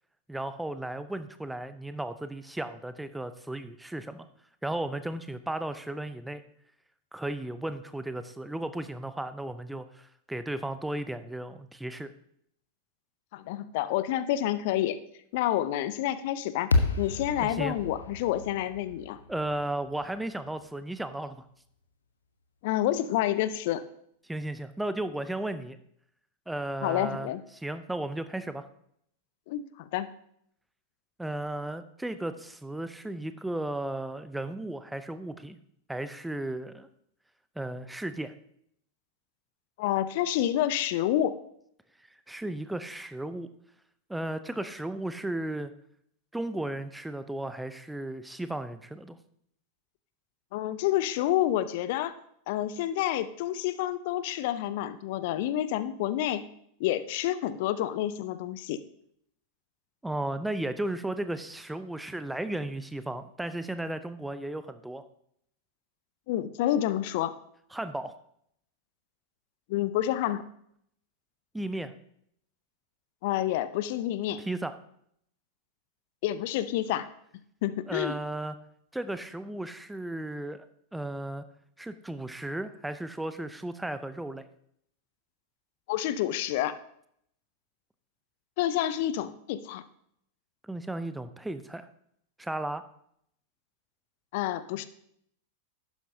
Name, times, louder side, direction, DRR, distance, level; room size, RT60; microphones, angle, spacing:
voice 1, 0.3-4.3 4.6-6.4 7.1-12.1 17.4-17.7 19.3-21.4 24.3-25.8 26.5-27.3 27.6-28.7 31.2-35.6 35.9-36.9 37.6-38.3 42.3-43.5 44.1-45.7 46.3-49.2 60.0-65.0 67.7-68.1 71.5-71.9 74.4-74.7 77.9-78.6 78.9-80.6 80.9-81.4 81.8-84.4 90.6-91.9 92.4-92.8, right 1 dB, 5° right, 12 dB, 0.6 m, -35 dB
voice 2, 13.3-15.0 15.3-19.2 22.6-23.8 26.8-27.4 29.5-30.1 39.8-41.3 50.5-52.1 52.5-56.4 56.8-58.8 66.3-67.3 69.7-70.4 73.2-74.4 76.2-77.1 77.6-78.2 85.9-86.7 88.6-89.8 94.3-94.9, left 12 dB, 50° left, 14 dB, 0.5 m, -28 dB
sound 1, 16.7-21.0, left 3 dB, 75° left, 1.0 m, -31 dB
11.5 x 9.4 x 2.7 m, 0.70 s
figure-of-eight pair, 90°, 0 cm